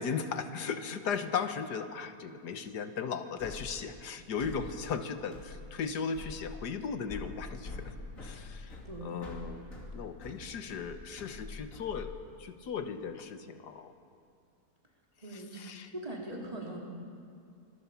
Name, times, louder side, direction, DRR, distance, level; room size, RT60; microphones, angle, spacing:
voice 1, 0.0-7.9 8.2-9.7 9.9-13.9 15.3-15.9, left 6 dB, 90° left, 9 dB, 1.8 m, -37 dB
sound 1, 3.4-12.5, left 3 dB, 55° left, 3.2 m, -46 dB
voice 2, 8.8-9.3 15.2-15.6 15.9-16.8, right 1 dB, 20° right, -2 dB, 3.9 m, -41 dB
25.5 x 21.5 x 7.2 m, 2.4 s
omnidirectional pair, 1.7 m